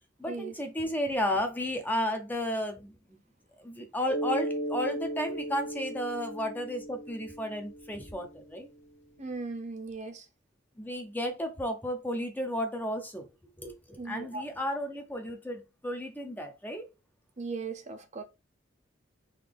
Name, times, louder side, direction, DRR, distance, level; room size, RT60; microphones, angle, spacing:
voice 1, 0.2-2.9 3.6-8.7 10.8-13.3 13.6-16.9, equal, 10° left, 0.7 m, -33 dB
Mallet percussion, 4.1-8.5, right 1 dB, 40° left, 1.1 m, -36 dB
voice 2, 9.2-10.3 14.0-14.4 17.4-18.2, right 4 dB, 40° right, 0.7 m, -38 dB
4.0 x 2.8 x 3.4 m
head